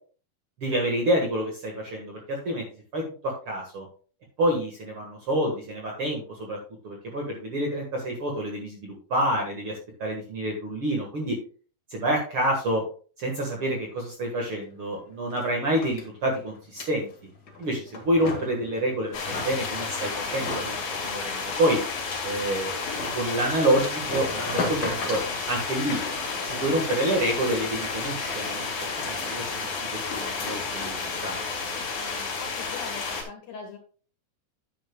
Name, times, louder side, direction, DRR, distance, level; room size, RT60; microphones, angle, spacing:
voice 1, 0.6-2.6 2.9-3.9 4.4-6.6 6.8-11.4 11.9-12.8 13.2-17.1 17.6-21.8 22.2-22.7 23.2-25.2 25.5-26.0 26.4-28.7 29.0-29.7 30.1-31.0 31.2-31.4 31.7-31.8, right 1 dB, 50° right, 0 dB, 1.8 m, -28 dB
sound 1, 14.6-14.7 14.9-31.5, left 2 dB, 40° left, 1.5 m, -38 dB
sound 2, 19.1-33.2, left 4 dB, 75° left, 4.1 m, -32 dB
voice 2, 31.7-33.8, left 5 dB, 55° left, 1 dB, 2.4 m, -42 dB
10.5 x 9.3 x 2.3 m, 0.40 s
omnidirectional pair, 4.2 m